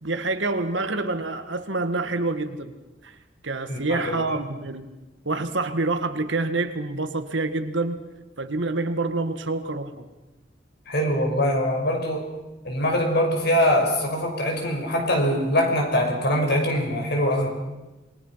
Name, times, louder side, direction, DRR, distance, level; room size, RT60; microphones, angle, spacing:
voice 1, 0.0-2.7 3.0-3.1 3.4-4.9 5.3-8.0 8.4-10.1, right 3 dB, 70° right, 9 dB, 1.8 m, -27 dB
voice 2, 3.7-4.3 10.9-12.3 12.6-17.5, equal, 60° left, 2 dB, 5.6 m, -23 dB
27.5 x 21.5 x 5.8 m, 1.1 s
head